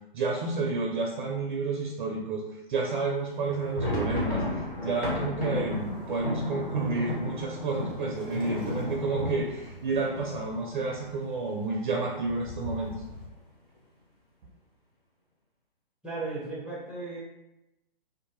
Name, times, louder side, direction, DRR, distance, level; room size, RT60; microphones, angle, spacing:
voice 1, 0.1-12.9, right 3 dB, 55° right, 0 dB, 0.5 m, -30 dB
sound 1, 3.4-11.1 11.4-11.6 11.8-12.0 12.6-13.1, left 1 dB, 80° left, 1.2 m, -33 dB
Waves surf, 5.7-13.3, left 1 dB, 60° left, 1.2 m, -48 dB
voice 2, 16.0-17.2, right 3 dB, 5° right, -8 dB, 0.6 m, -35 dB
2.6 x 2.1 x 3.0 m, 0.91 s
figure-of-eight pair, 125°, 30 cm